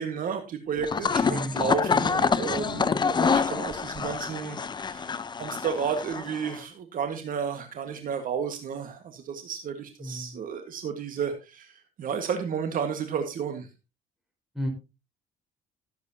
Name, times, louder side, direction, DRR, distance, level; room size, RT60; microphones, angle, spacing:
voice 1, 0.0-13.7, right 7 dB, 55° right, 6 dB, 1.7 m, -32 dB
sound 1, 0.8-6.6, left 5 dB, 25° left, 0.7 m, -27 dB
voice 2, 1.2-1.6 10.0-10.4 14.5-14.7, equal, ahead, 1 dB, 4.7 m, -33 dB
15.5 x 8.1 x 2.8 m, 0.27 s
cardioid pair, 110°, 17 cm